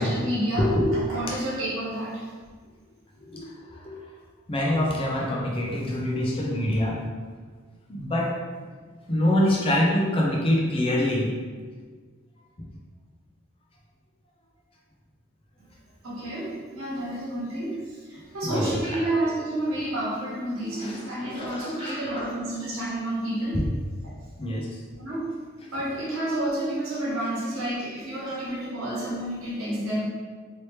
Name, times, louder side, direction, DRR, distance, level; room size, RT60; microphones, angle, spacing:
voice 1, 0.0-2.3 16.0-23.7 25.0-25.3 25.7-30.0, right 1 dB, 80° right, -7 dB, 1.2 m, -30 dB
voice 2, 0.6-0.9 3.3-3.4 3.8-4.0 4.5-7.0 7.9-8.3 9.1-11.3 18.4-18.7 20.8-21.0 21.3-22.0 23.5-23.6 24.4-24.7, left 1 dB, 25° left, -3 dB, 0.5 m, -24 dB
3.2 x 2.9 x 3.0 m, 1.5 s
head